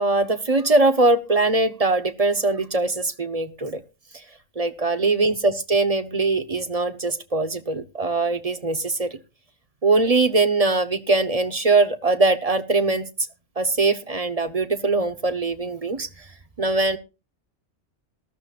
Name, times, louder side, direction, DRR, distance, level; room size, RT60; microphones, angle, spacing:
voice 1, 0.0-3.8 4.1-4.2 4.6-9.2 9.8-13.1 13.6-16.3 16.6-17.0, right 3 dB, 35° right, 10 dB, 0.8 m, -21 dB
18.5 x 12.5 x 2.4 m, 0.29 s
omnidirectional pair, 1.3 m